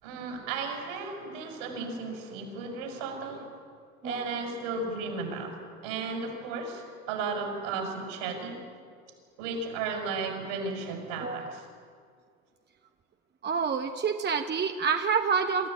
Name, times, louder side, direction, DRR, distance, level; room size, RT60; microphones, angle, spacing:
voice 1, 0.0-3.5 4.0-8.6 9.4-11.7, right 4 dB, 70° right, 2 dB, 6.5 m, -35 dB
voice 2, 4.0-4.4 11.2-11.6 13.4-15.7, right 6 dB, 30° right, 5 dB, 1.3 m, -28 dB
26.5 x 14.5 x 8.9 m, 2.1 s
hypercardioid pair, 70°, 37 cm